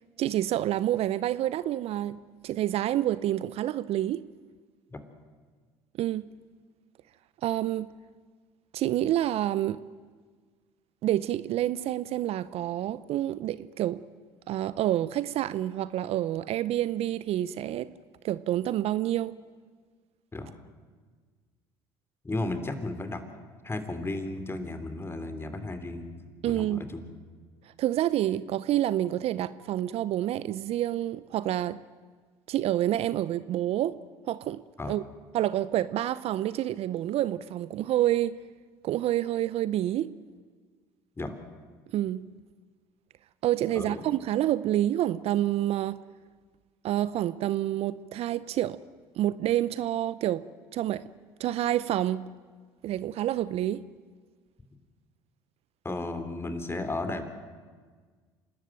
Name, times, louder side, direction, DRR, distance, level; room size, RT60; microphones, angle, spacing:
voice 1, 0.2-4.3 6.0-6.2 7.4-7.9 8.7-9.8 11.0-14.0 14.5-17.9 18.2-19.4 26.4-26.8 27.8-31.8 32.5-34.0 34.3-35.0 35.3-38.4 38.8-40.1 41.9-42.2 43.4-46.0 46.8-48.8 49.1-50.4 50.7-51.1 51.4-52.2 52.8-53.8, right 13 dB, 55° right, 0.6 m, -28 dB
voice 2, 22.2-23.2 23.6-27.1 34.8-34.9 41.2-41.3 43.7-44.0 55.8-57.2, left 2 dB, 20° left, 3.3 m, -34 dB
28.0 x 13.0 x 9.1 m
hypercardioid pair, 65°, 12 cm